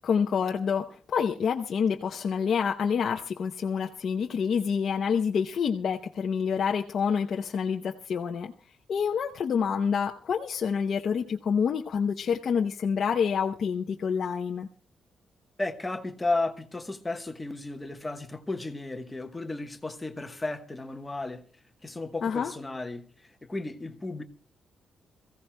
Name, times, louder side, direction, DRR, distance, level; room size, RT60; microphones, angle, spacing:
voice 1, 0.0-8.5 8.9-14.7 22.2-22.5, left 6 dB, 45° left, 0.7 m, -27 dB
voice 2, 15.6-21.4 21.8-24.2, left 2 dB, 10° left, 1.1 m, -34 dB
27.0 x 15.5 x 2.2 m
wide cardioid pair, 180°, 0 cm